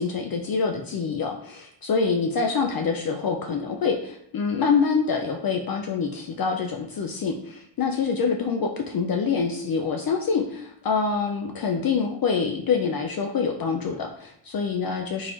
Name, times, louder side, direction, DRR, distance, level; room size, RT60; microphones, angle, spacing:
voice 1, 0.0-15.3, left 5 dB, 50° left, 3 dB, 0.5 m, -26 dB
3.8 x 2.9 x 2.5 m, 0.74 s
cardioid pair, 60°, 47 cm